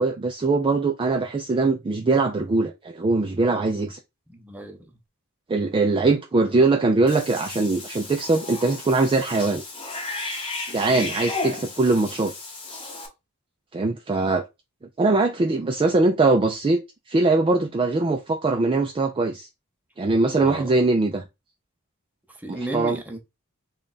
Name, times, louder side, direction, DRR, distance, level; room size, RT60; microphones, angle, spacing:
voice 1, 0.0-4.0 5.5-9.6 10.7-12.3 13.7-14.4 15.0-16.8 17.1-19.5 20.0-21.2 22.5-23.0, right 3 dB, 25° right, 0.3 m, -21 dB
voice 2, 4.3-4.9 10.9-11.1 20.4-20.7 22.4-23.2, right 1 dB, 5° right, 0.7 m, -34 dB
Cat / Bathtub (filling or washing), 7.1-13.1, left 3 dB, 25° left, 0.9 m, -34 dB
3.3 x 2.3 x 3.9 m
head